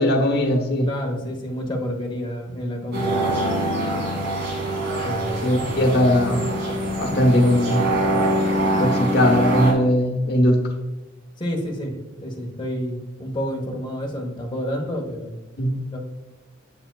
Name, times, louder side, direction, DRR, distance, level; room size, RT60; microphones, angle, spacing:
voice 1, 0.0-0.9 3.1-3.3 3.9-4.0 5.4-6.4 7.0-7.9 8.6-10.6 15.6-15.7, left 1 dB, 55° left, 3 dB, 1.1 m, -19 dB
voice 2, 0.9-3.2 5.0-5.6 11.4-11.9 12.2-15.4 15.9-16.0, equal, 25° left, 1 dB, 1.1 m, -29 dB
sound 1, 2.9-9.7, right 1 dB, 60° right, 1.9 m, -24 dB
7.9 x 6.9 x 2.3 m, 1.1 s
head